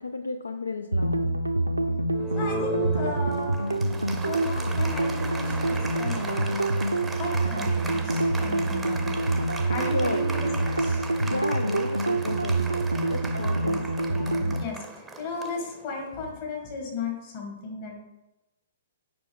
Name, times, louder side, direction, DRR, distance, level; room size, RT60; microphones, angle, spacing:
voice 1, 0.0-1.3 9.4-9.5 9.8-10.2 11.2-12.6 13.1-13.8, left 3 dB, 75° left, 8 dB, 0.4 m, -33 dB
sound 1, 0.9-14.6, right 2 dB, 80° right, 0.5 m, -26 dB
Applause, 2.1-16.2, right 2 dB, 5° right, 0.7 m, -37 dB
voice 2, 2.4-3.8 4.2-6.5 7.2-9.2 9.7-11.0 13.4-18.0, left 4 dB, 40° left, 0 dB, 2.0 m, -36 dB
7.6 x 5.4 x 3.5 m, 0.95 s
figure-of-eight pair, 115°, 0 cm